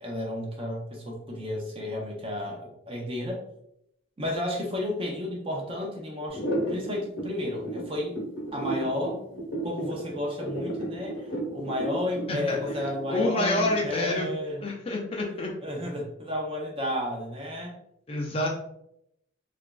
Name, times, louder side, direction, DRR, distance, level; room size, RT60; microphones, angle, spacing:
voice 1, 0.0-3.4 4.2-6.4 6.7-8.2 8.5-9.2 9.6-14.6 15.6-17.7, left 1 dB, 25° right, -1 dB, 0.5 m, -32 dB
sound 1, 6.3-14.1, right 1 dB, 65° left, 0.9 m, -33 dB
voice 2, 12.3-14.3 14.6-15.5 18.1-18.5, left 2 dB, 30° left, 0 dB, 0.4 m, -28 dB
2.9 x 2.4 x 2.2 m, 0.76 s
head